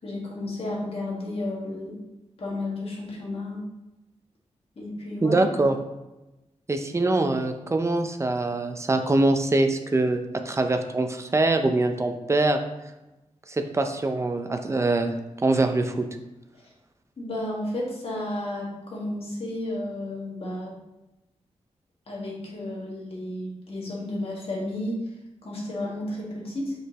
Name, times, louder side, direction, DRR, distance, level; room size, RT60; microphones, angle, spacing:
voice 1, 0.0-2.0 2.4-3.6 4.8-5.4 17.2-20.8 22.1-25.0 25.4-26.7, left 1 dB, 55° left, -4 dB, 1.8 m, -32 dB
voice 2, 5.2-5.8 6.7-12.6 13.5-15.1 15.4-16.1, right 2 dB, 25° right, 6 dB, 0.6 m, -23 dB
6.3 x 5.1 x 3.0 m, 0.99 s
wide cardioid pair, 110°, 12 cm